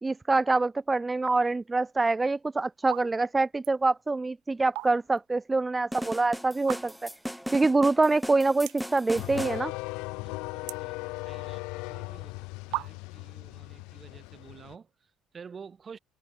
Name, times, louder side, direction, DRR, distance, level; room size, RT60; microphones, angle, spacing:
voice 1, 0.0-7.1 7.5-9.7, right 3 dB, 20° right, 0.4 m, -25 dB
sound 1, 2.0-2.3 2.8-3.1 3.4-3.8 4.5-5.2 5.6-5.7 6.6-7.2 7.7-7.8 8.0-8.1 8.6-9.0 9.4-9.8 10.1-11.5 12.2-12.3 12.7-13.3, right 22 dB, 85° right, 1.6 m, -37 dB
sound 2, 5.9-9.6, equal, ahead, 0.8 m, -37 dB
sound 3, 9.2-14.8, left 26 dB, 90° left, 0.7 m, -38 dB
voice 2, 10.2-12.4 12.7-16.0, right 6 dB, 35° right, 5.2 m, -50 dB
cardioid pair, 95°, 0 cm